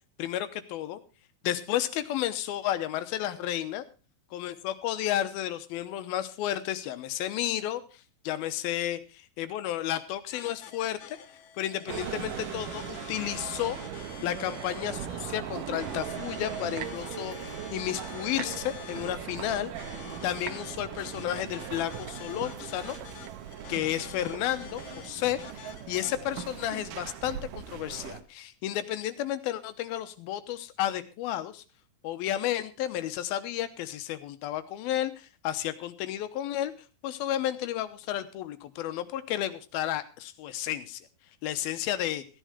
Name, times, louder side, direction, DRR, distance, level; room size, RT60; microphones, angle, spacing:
voice 1, 0.2-1.0 1.4-3.8 4.3-7.8 8.2-11.2 11.6-13.8 14.2-19.7 20.2-23.0 23.7-31.6 32.0-36.7 37.0-41.1 41.4-42.2, left 12 dB, 85° left, 11 dB, 2.8 m, -32 dB
sound 1, 10.3-26.2, left 9 dB, 60° left, 2.5 m, -47 dB
sound 2, 11.9-28.2, right 10 dB, 70° right, 2.4 m, -39 dB
15.0 x 10.0 x 4.9 m, 0.32 s
omnidirectional pair, 4.3 m